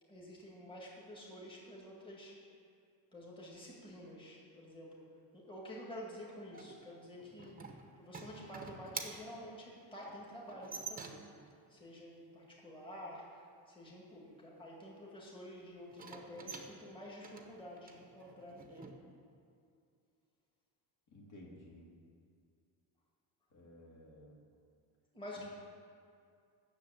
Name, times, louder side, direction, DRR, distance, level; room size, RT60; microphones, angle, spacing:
voice 1, 0.1-2.3 3.1-5.0 5.3-11.2 11.7-19.0 25.1-25.5, equal, 10° left, -4 dB, 1.9 m, -50 dB
sound 1, 6.5-11.5 15.9-18.9, right 5 dB, 20° right, 0.8 m, -48 dB
voice 2, 21.1-21.9 23.5-24.4 25.4-25.5, left 1 dB, 50° left, -3 dB, 1.9 m, -55 dB
9.9 x 6.8 x 8.4 m, 2.4 s
cardioid pair, 180°, 40 cm